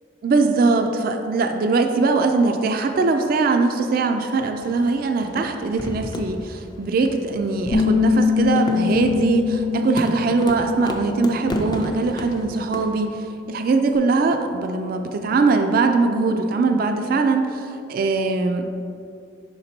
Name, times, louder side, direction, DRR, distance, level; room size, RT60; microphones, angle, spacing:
voice 1, 0.2-18.7, right 3 dB, 50° right, 5 dB, 0.3 m, -21 dB
sound 1, 4.6-13.1, left 1 dB, 25° left, 0.5 m, -33 dB
Bass guitar, 7.7-12.0 12.3-14.0, left 6 dB, 80° left, 0.6 m, -24 dB
5.9 x 4.0 x 4.3 m, 2.5 s
head